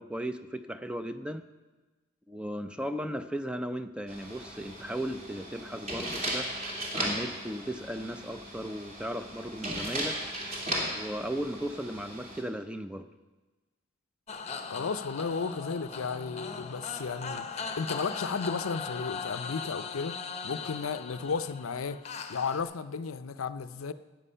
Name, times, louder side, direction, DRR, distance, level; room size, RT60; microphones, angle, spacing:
voice 1, 0.0-1.4 2.3-6.5 6.9-10.2 10.9-13.1, equal, 5° right, 10 dB, 0.5 m, -36 dB
sound 1, 4.1-12.4, right 1 dB, 35° right, 2.6 m, -36 dB
sound 2, 14.3-22.6, left 5 dB, 30° left, 0.8 m, -39 dB
voice 2, 14.7-20.2 20.4-22.0 22.3-23.9, left 5 dB, 80° left, 13 dB, 0.6 m, -34 dB
15.0 x 9.2 x 5.6 m, 1.2 s
head